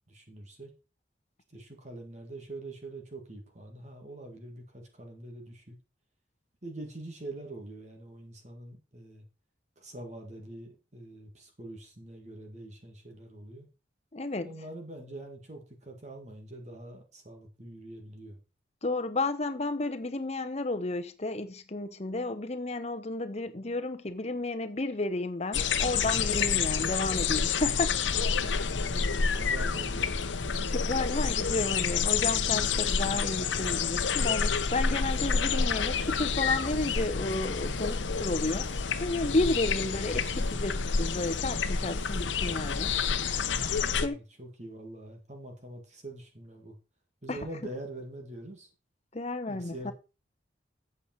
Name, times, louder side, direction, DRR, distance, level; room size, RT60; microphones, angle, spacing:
voice 1, 0.1-0.7 1.5-5.8 6.6-9.2 9.8-13.7 14.4-18.4 28.8-30.4 44.0-46.8 47.2-48.7 49.5-49.9, right 1 dB, 40° right, 1.9 m, -44 dB
voice 2, 14.1-14.5 18.8-28.2 28.7-28.8 30.6-38.7 39.0-42.9 44.0-44.2 47.3-47.4 49.1-49.9, left 2 dB, 35° left, 0.9 m, -32 dB
sound 1, 25.5-44.1, left 5 dB, 80° left, 0.9 m, -29 dB
sound 2, 33.0-43.2, right 1 dB, 55° right, 2.6 m, -54 dB
8.5 x 8.3 x 4.4 m
head